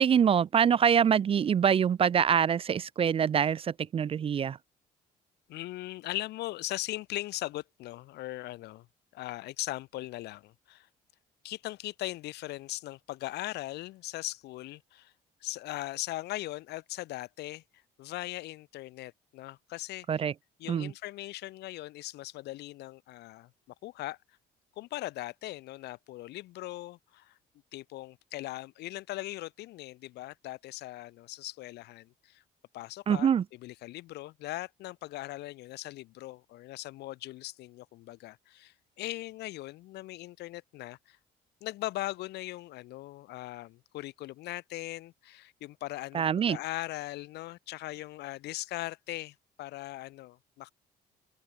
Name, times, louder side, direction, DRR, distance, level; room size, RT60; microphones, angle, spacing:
voice 1, 0.0-4.6 20.1-20.3 20.7-20.9 33.1-33.4 46.1-46.6, right 8 dB, 35° right, 0.5 m, -25 dB
voice 2, 5.5-8.9 9.1-10.9 11.4-15.1 15.4-17.6 18.0-20.1 20.6-23.5 23.8-24.2 24.8-27.4 27.7-32.4 32.7-41.2 41.6-50.7, left 17 dB, 80° left, 1.8 m, -39 dB
open air
cardioid pair, 110°, 17 cm